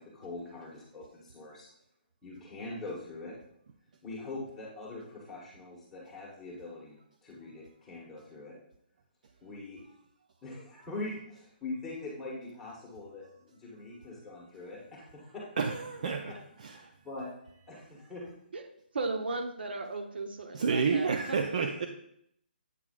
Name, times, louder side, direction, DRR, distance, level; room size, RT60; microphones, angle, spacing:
voice 1, 0.0-1.7 2.2-3.3 4.0-7.0 7.2-8.5 9.4-9.8 10.4-15.4 16.0-16.4 17.0-17.3 17.7-18.3, left 2 dB, 5° left, -6 dB, 1.2 m, -42 dB
voice 2, 15.6-16.3 16.6-16.8 20.5-21.9, right 5 dB, 45° right, 5 dB, 0.5 m, -29 dB
voice 3, 18.9-21.7, right 3 dB, 65° right, 5 dB, 0.9 m, -36 dB
8.2 x 5.8 x 2.5 m, 0.72 s
hypercardioid pair, 170°, 6 cm